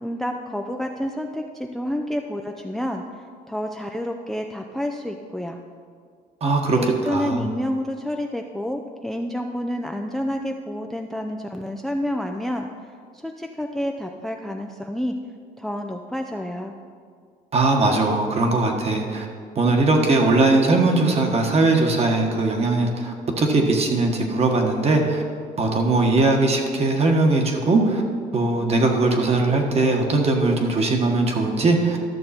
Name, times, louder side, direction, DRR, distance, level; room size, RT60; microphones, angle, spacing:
voice 1, 0.0-3.0 3.5-5.6 6.7-12.7 13.1-15.1 15.6-16.7, equal, ahead, 4 dB, 0.4 m, -29 dB
voice 2, 6.4-6.8 7.1-7.5 17.5-19.3 19.5-25.2 25.6-28.0 28.3-32.0, right 2 dB, 40° right, 2 dB, 1.4 m, -20 dB
12.5 x 6.5 x 4.3 m, 2.1 s
cardioid pair, 110°, 17 cm